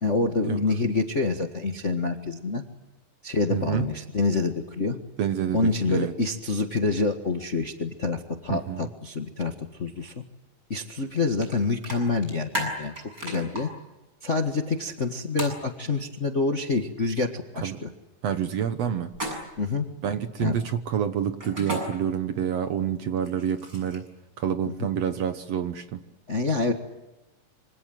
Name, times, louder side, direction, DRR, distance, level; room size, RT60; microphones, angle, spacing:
voice 1, 0.0-2.6 3.2-5.0 5.5-10.1 10.7-12.9 13.2-13.7 14.2-17.9 19.6-19.9 20.4-20.6 24.8-24.9 26.3-26.7, left 3 dB, 35° left, 5 dB, 1.1 m, -27 dB
voice 2, 3.5-3.9 5.2-6.1 8.5-8.9 17.6-17.8 18.2-19.1 20.0-24.1 24.4-26.0, right 8 dB, 60° right, 10 dB, 1.9 m, -28 dB
sound 1, 11.4-11.5 11.8-13.6 15.4-15.6 19.1-19.7 21.4-21.8 23.2-24.1, equal, 25° right, 7.9 m, -33 dB
26.5 x 26.0 x 7.8 m, 1.1 s
omnidirectional pair, 3.8 m